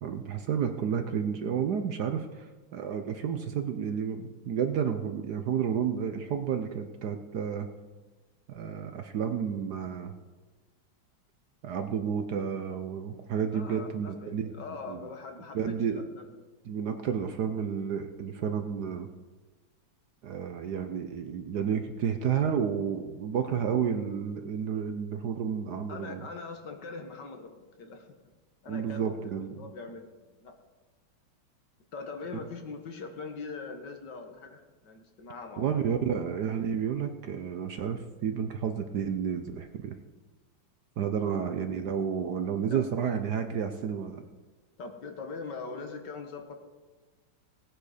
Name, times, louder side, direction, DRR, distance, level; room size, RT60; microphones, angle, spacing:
voice 1, 0.0-7.7 8.5-10.1 11.6-14.5 14.9-15.0 15.5-16.1 16.6-19.1 20.2-26.3 28.7-29.7 35.6-39.9 41.0-44.2, right 7 dB, 65° right, 7 dB, 1.2 m, -31 dB
voice 2, 13.5-16.3 25.9-28.1 28.6-29.2 29.5-30.5 31.9-35.8 41.2-41.4 42.7-42.8 44.8-46.6, left 4 dB, 60° left, 5 dB, 1.9 m, -42 dB
18.0 x 9.4 x 5.0 m, 1.3 s
omnidirectional pair, 2.2 m